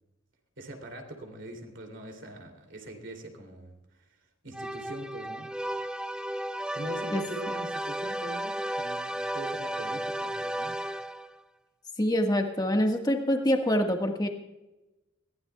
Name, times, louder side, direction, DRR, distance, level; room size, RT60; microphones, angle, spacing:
voice 1, 0.6-3.7 4.4-5.5 6.7-10.8, right 1 dB, 60° right, 4 dB, 2.8 m, -42 dB
sound 1, 4.5-11.4, right 1 dB, 5° right, 0.3 m, -34 dB
voice 2, 12.0-14.3, equal, 20° left, 4 dB, 1.5 m, -25 dB
21.0 x 16.0 x 2.3 m, 1.0 s
head